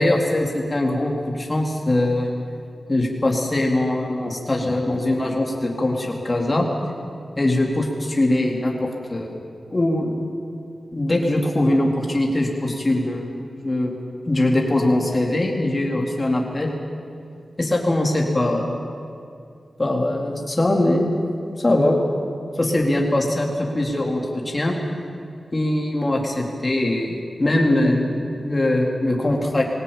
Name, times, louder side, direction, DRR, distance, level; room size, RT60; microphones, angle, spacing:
voice 1, 0.0-2.3 2.9-6.7 7.4-9.4 9.7-10.2 10.9-13.9 14.3-16.7 17.6-18.8 19.8-21.1 21.6-22.0 22.6-24.7 25.5-29.6, left 1 dB, 30° left, 0 dB, 4.0 m, -21 dB
21.5 x 17.5 x 9.1 m, 2.4 s
cardioid pair, 55°, 0 cm